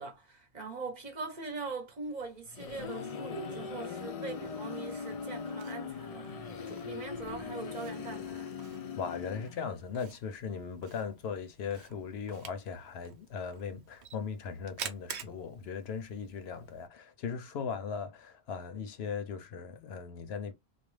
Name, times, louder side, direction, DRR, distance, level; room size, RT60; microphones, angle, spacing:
voice 1, 0.0-8.5, right 4 dB, 45° right, 0.8 m, -42 dB
sound 1, 2.2-9.9, left 5 dB, 60° left, 0.4 m, -40 dB
Camera, 4.9-16.9, right 7 dB, 90° right, 0.9 m, -50 dB
voice 2, 9.0-20.5, left 6 dB, 75° left, 0.8 m, -38 dB
2.4 x 2.2 x 3.1 m
omnidirectional pair, 1.1 m